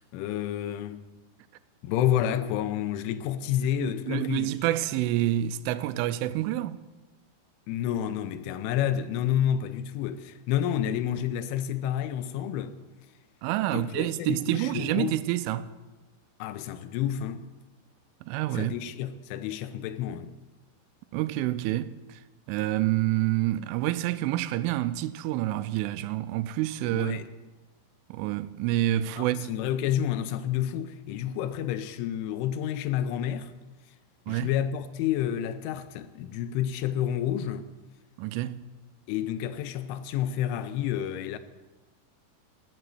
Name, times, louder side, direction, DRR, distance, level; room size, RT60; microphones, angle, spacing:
voice 1, 0.1-1.0 1.8-4.5 7.7-12.8 13.7-15.2 16.4-17.4 18.5-20.3 26.9-27.3 29.2-33.5 34.3-37.7 39.1-41.4, left 10 dB, 90° left, 3.2 m, -29 dB
voice 2, 3.8-6.8 13.4-15.7 18.2-18.8 21.1-22.2 22.5-27.2 28.1-29.5 34.3-34.6 38.2-38.7, right 14 dB, 85° right, 3.1 m, -28 dB
14.0 x 8.0 x 9.2 m
omnidirectional pair, 5.6 m